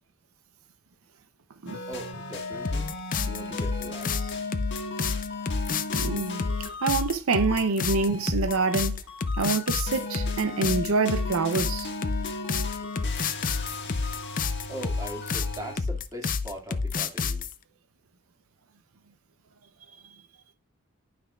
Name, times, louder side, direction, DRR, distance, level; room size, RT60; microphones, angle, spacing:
sound 1, 1.7-15.8, left 3 dB, 60° left, 1.6 m, -36 dB
voice 1, 1.9-2.9 3.3-4.6 14.7-17.5, right 1 dB, 15° right, 2.1 m, -40 dB
sound 2, 2.6-17.5, left 4 dB, 40° left, 0.5 m, -29 dB
voice 2, 5.9-9.0 9.4-11.9, right 4 dB, 75° right, 0.7 m, -26 dB
12.0 x 5.9 x 2.4 m
head